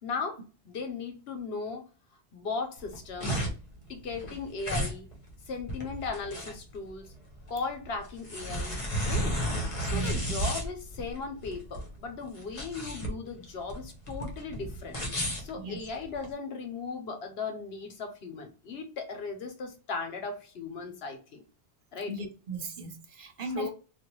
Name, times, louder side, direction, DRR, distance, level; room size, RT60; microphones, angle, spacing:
voice 1, 0.0-1.8 2.3-3.4 3.9-5.1 5.5-7.1 7.5-9.4 9.8-15.0 15.4-21.4 21.9-22.1 23.5-23.7, left 4 dB, 75° left, 1.0 m, -37 dB
sound 1, 2.8-16.3, equal, 35° left, 0.9 m, -33 dB
voice 2, 9.9-10.4 15.6-15.8 22.1-23.7, right 2 dB, 60° right, 0.8 m, -37 dB
3.3 x 2.5 x 2.9 m
omnidirectional pair, 1.1 m